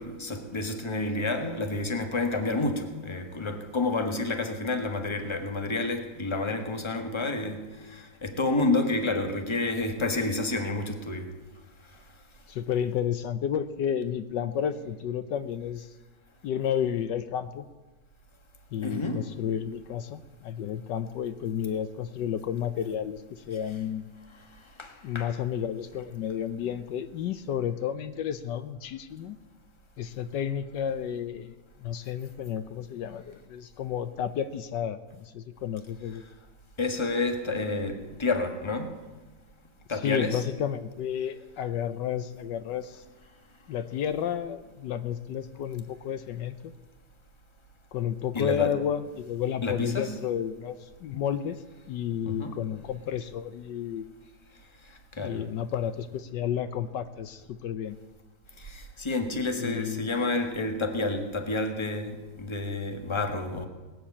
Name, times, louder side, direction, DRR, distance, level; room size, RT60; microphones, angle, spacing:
voice 1, 0.0-11.3 18.8-19.3 24.8-25.3 36.8-39.0 39.9-40.4 48.3-48.7 49.6-50.1 52.2-52.6 55.2-55.5 58.6-63.7, left 2 dB, 15° left, 1.4 m, -29 dB
voice 2, 12.5-15.9 16.4-17.7 18.7-24.1 25.0-29.4 30.0-36.2 39.9-43.0 43.7-46.7 47.9-54.1 55.2-58.0 59.6-60.1, left 9 dB, 80° left, 1.4 m, -31 dB
19.0 x 7.7 x 8.5 m
omnidirectional pair, 1.9 m